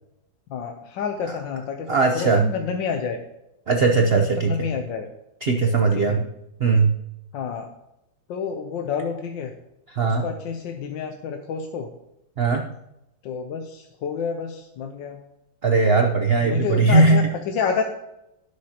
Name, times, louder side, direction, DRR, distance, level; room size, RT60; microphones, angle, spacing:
voice 1, 0.5-3.2 4.0-5.0 6.0-6.2 7.3-7.7 8.3-9.5 10.0-11.9 13.2-15.2 16.4-17.8, left 6 dB, 70° left, 4 dB, 1.5 m, -29 dB
voice 2, 1.9-2.5 3.7-4.7 5.4-6.2 6.6-7.0 9.9-10.3 12.4-12.6 15.6-17.3, right 3 dB, 65° right, 3 dB, 0.5 m, -19 dB
18.0 x 6.3 x 2.9 m, 0.88 s
omnidirectional pair, 2.2 m